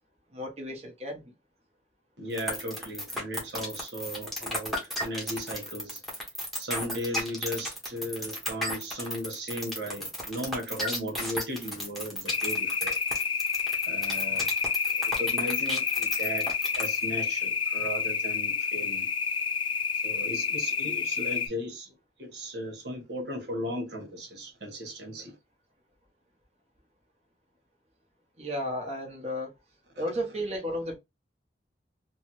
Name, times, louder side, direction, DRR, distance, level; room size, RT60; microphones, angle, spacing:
voice 1, 0.3-1.3 28.4-29.5 30.0-31.0, equal, 35° right, 1.0 m, -33 dB
voice 2, 2.2-6.0 6.6-13.0 13.8-14.5 14.9-16.5 16.7-19.1 20.0-21.9 22.2-25.3, equal, 70° right, 1.2 m, -36 dB
sound 1, 2.4-17.0, equal, ahead, 0.9 m, -34 dB
sound 2, 12.3-21.5, left 5 dB, 30° left, 0.4 m, -29 dB
3.3 x 2.1 x 2.9 m
head